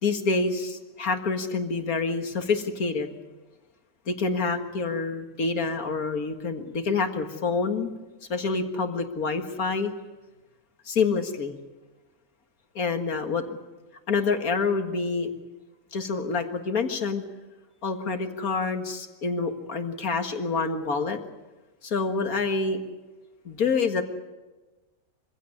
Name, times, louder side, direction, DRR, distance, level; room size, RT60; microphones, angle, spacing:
voice 1, 0.0-3.2 4.1-7.9 8.3-9.9 10.9-11.6 12.8-13.6 14.1-15.3 15.9-17.2 17.8-21.2 21.8-22.8 23.5-24.0, left 4 dB, 85° left, 6 dB, 2.2 m, -27 dB
24.5 x 16.5 x 9.5 m, 1.2 s
omnidirectional pair, 1.5 m